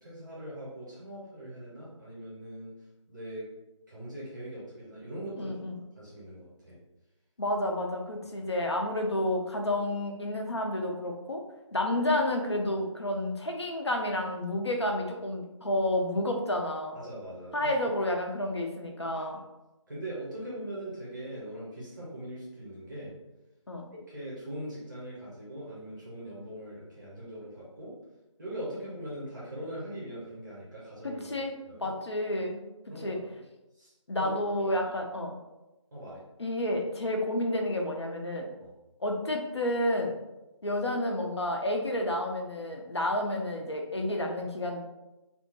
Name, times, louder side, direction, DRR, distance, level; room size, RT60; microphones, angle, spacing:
voice 1, 0.0-2.7 3.1-3.5 3.9-5.6 6.0-6.8 16.9-17.9 19.1-19.2 19.9-23.1 23.9-27.9 28.4-31.9 32.9-33.2 33.7-33.9 34.2-34.3 34.8-34.9 35.9-36.2 38.6-38.7, right 1 dB, 35° right, -7 dB, 1.0 m, -41 dB
voice 2, 5.4-5.8 7.4-11.4 11.7-17.0 17.5-19.4 23.7-23.9 31.0-32.6 33.0-33.2 34.1-35.3 36.4-38.5 39.0-40.1 40.6-44.8, left 1 dB, 55° left, 2 dB, 0.5 m, -30 dB
2.9 x 2.1 x 2.9 m, 1.0 s
figure-of-eight pair, 160°, 17 cm